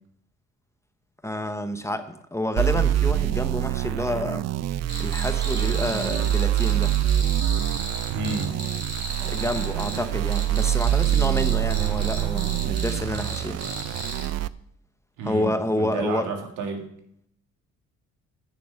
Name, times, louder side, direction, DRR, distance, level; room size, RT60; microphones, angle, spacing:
voice 1, 1.2-4.4 5.0-6.9 9.2-13.6 15.2-16.3, left 1 dB, 10° left, 9 dB, 0.8 m, -29 dB
sound 1, 2.6-14.5, right 12 dB, 60° right, 0.5 m, -25 dB
Cricket, 4.9-14.3, right 2 dB, 35° right, 2.7 m, -36 dB
voice 2, 8.1-8.6 15.2-16.9, right 3 dB, 85° right, 3 dB, 2.1 m, -31 dB
8.9 x 6.7 x 6.4 m, 0.70 s
cardioid pair, 90°, 30 cm